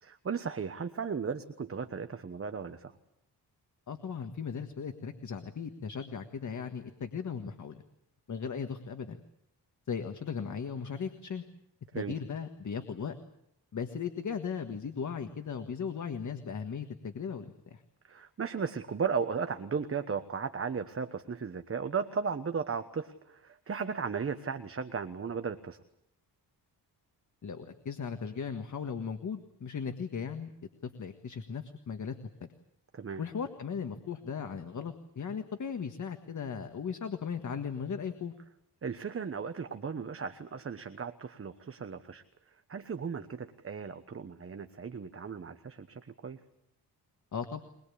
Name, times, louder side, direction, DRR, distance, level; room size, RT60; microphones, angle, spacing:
voice 1, 0.0-2.9 11.9-12.2 18.0-25.8 32.9-33.2 38.8-42.2 42.7-46.4, right 6 dB, 35° right, 8 dB, 1.1 m, -36 dB
voice 2, 3.9-7.8 8.3-9.2 9.9-11.4 11.9-13.1 13.7-17.8 27.4-30.5 30.8-32.1 32.4-32.5 33.2-38.3 47.3-47.6, left 6 dB, 45° left, 7 dB, 1.6 m, -37 dB
23.0 x 21.5 x 8.6 m, 0.78 s
wide cardioid pair, 135°, 40 cm